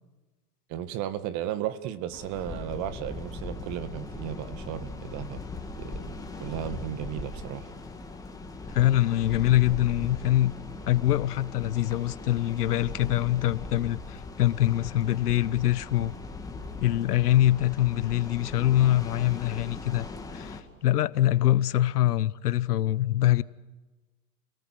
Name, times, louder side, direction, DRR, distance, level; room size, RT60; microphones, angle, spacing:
voice 1, 0.7-5.4 5.8-7.7, right 11 dB, 40° right, 1.8 m, -35 dB
sound 1, 2.1-20.6, left 3 dB, 10° left, 2.3 m, -39 dB
voice 2, 8.7-10.5 10.9-16.1 16.8-20.1 20.3-23.4, left 14 dB, 80° left, 1.0 m, -24 dB
29.5 x 18.5 x 7.6 m
hypercardioid pair, 125°, 45 cm